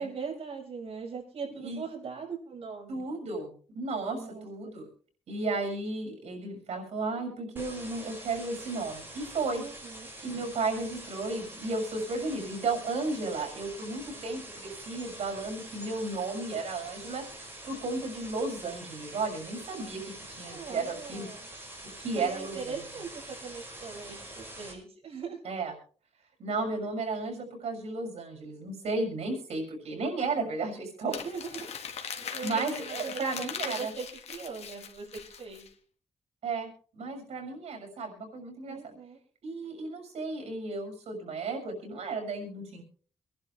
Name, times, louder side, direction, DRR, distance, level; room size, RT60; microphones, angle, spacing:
voice 1, 0.0-3.1 4.1-4.8 9.6-10.1 13.9-14.4 20.5-21.5 22.1-25.4 31.1-31.7 32.3-35.7 38.7-39.2, right 5 dB, 65° right, -4 dB, 6.5 m, -40 dB
voice 2, 2.9-4.9 5.3-9.6 10.2-17.2 17.6-20.0 20.3-21.3 22.0-22.7 25.4-25.7 26.4-31.2 32.4-33.9 36.4-38.8 39.4-42.8, right 3 dB, 90° right, 2 dB, 6.5 m, -34 dB
sound 1, 7.6-24.7, right 1 dB, 20° right, 5.8 m, -45 dB
Crumpling crinkling, 31.1-35.7, left 7 dB, 75° left, 1.9 m, -40 dB
26.0 x 11.0 x 3.3 m, 0.42 s
wide cardioid pair, 135°, 11 cm